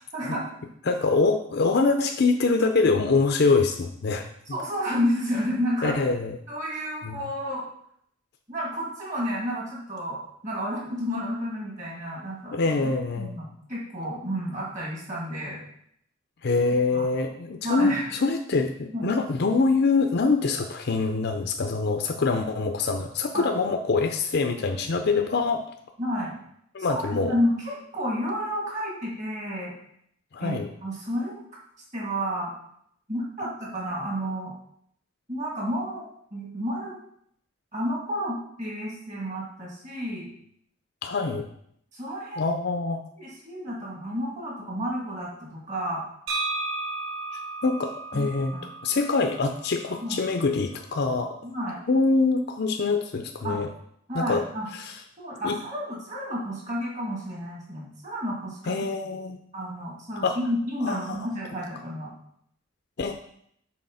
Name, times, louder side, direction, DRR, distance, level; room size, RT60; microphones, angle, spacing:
voice 1, 0.1-0.5 4.5-5.9 6.5-7.6 8.5-12.6 13.2-15.6 16.9-17.1 17.6-18.0 18.9-19.1 23.3-23.5 24.7-24.8 26.0-26.4 26.9-29.8 30.4-31.4 31.9-32.5 33.1-34.5 35.3-36.0 36.3-36.9 37.7-40.3 41.9-42.4 43.2-46.0 48.1-48.6 50.0-50.2 51.4-51.8 53.4-53.6 54.1-54.7 55.2-58.8 59.5-62.1, equal, 35° right, -4 dB, 2.4 m, -31 dB
voice 2, 0.8-4.6 5.8-6.4 7.0-7.3 12.5-13.4 16.4-25.7 26.7-27.3 30.3-30.7 41.0-41.5 42.4-43.0 47.3-48.5 48.8-51.4 51.9-53.7 54.1-54.4 54.7-54.9 55.4-55.6 58.7-59.4 60.2-60.4 60.8-61.2 63.0-63.1, left 3 dB, 50° left, 5 dB, 0.5 m, -24 dB
sound 1, 46.3-50.1, right 2 dB, 70° right, 1.2 m, -34 dB
6.4 x 4.2 x 5.6 m, 0.69 s
head